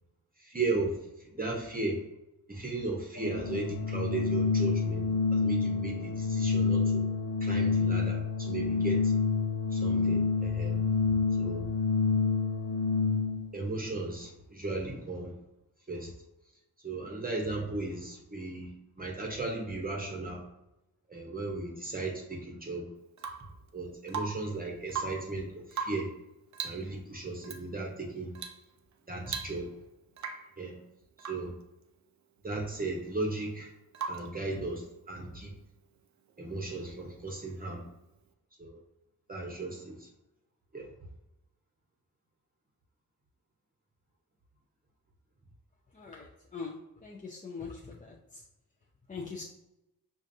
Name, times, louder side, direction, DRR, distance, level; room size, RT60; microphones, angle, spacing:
voice 1, 0.4-2.0 2.5-7.0 7.4-9.1 9.7-10.8 11.4-11.6 13.5-15.3 15.9-16.1 16.8-20.5 21.1-22.9 23.7-26.1 26.6-28.4 29.1-29.7 30.6-30.8 31.2-31.5 32.4-33.7 34.1-35.5 36.4-37.9 38.6-38.8 39.3-40.1 40.7-40.9, right 2 dB, 25° right, -1 dB, 0.8 m, -36 dB
Organ, 3.2-13.5, left 4 dB, 60° left, 1.1 m, -28 dB
Rain / Water tap faucet / Drip, 23.2-23.6 24.1-24.5 24.8-25.3 25.7-26.1 26.5-26.9 27.4-27.6 28.3-28.6 28.9-29.0 29.3-29.8 30.2-30.5 31.2-31.5 33.9-34.4 36.3-36.4, right 6 dB, 50° right, 0.5 m, -38 dB
voice 2, 47.0-47.7 49.1-49.4, left 5 dB, 20° left, -2 dB, 0.5 m, -40 dB
5.0 x 2.5 x 2.6 m, 0.92 s
cardioid pair, 65°, 37 cm